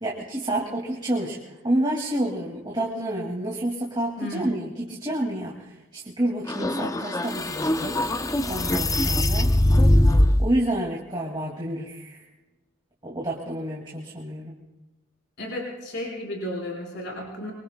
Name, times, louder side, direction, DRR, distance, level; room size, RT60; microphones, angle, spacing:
voice 1, 0.0-9.5 10.4-12.2 13.0-14.6, right 1 dB, 20° right, -3 dB, 2.1 m, -29 dB
voice 2, 4.2-4.5 15.4-17.5, left 1 dB, 55° left, -1 dB, 4.9 m, -33 dB
sound 1, 6.5-10.5, left 1 dB, 15° left, 0.4 m, -21 dB
25.0 x 24.5 x 2.2 m, 1.1 s
head